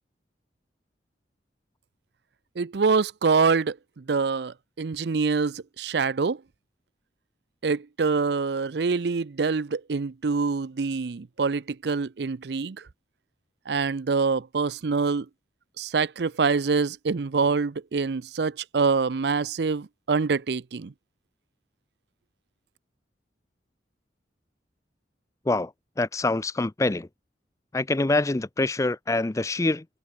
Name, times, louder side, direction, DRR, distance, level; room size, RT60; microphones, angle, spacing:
voice 1, 2.6-6.4 7.6-12.8 13.7-15.3 15.8-20.9, right 4 dB, 65° right, 0.5 m, -25 dB
voice 2, 25.4-27.1 27.7-29.9, left 2 dB, 15° left, 0.4 m, -25 dB
head